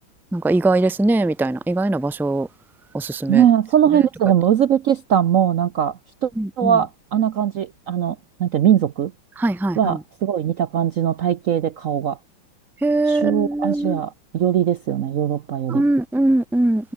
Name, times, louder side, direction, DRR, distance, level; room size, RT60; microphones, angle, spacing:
voice 1, 0.3-2.5 2.9-3.4 6.4-6.7 9.4-9.8 12.8-14.0 15.7-16.9, right 2 dB, ahead, 0.5 m, -21 dB
voice 2, 3.3-6.3 6.6-9.1 9.7-12.2 13.1-15.8, right 9 dB, 90° right, 0.7 m, -20 dB
omnidirectional pair, 2.4 m